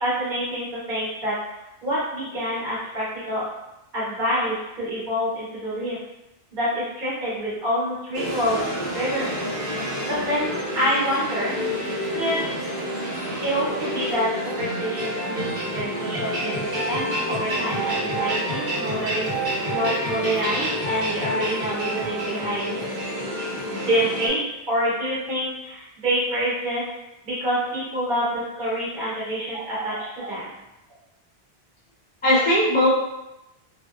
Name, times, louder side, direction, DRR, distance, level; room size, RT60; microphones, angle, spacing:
voice 1, 0.0-1.4 1.8-3.4 3.9-6.0 6.5-8.6 8.9-11.6 12.1-12.6 13.4-22.8 23.6-26.9 27.2-30.5, equal, 55° right, -9 dB, 1.0 m, -27 dB
sound 1, 8.1-24.3, equal, 80° right, 1.1 m, -28 dB
voice 2, 29.5-30.3 32.2-32.9, left 1 dB, 15° left, -6 dB, 0.4 m, -21 dB
2.5 x 2.2 x 2.3 m, 0.91 s
omnidirectional pair, 1.0 m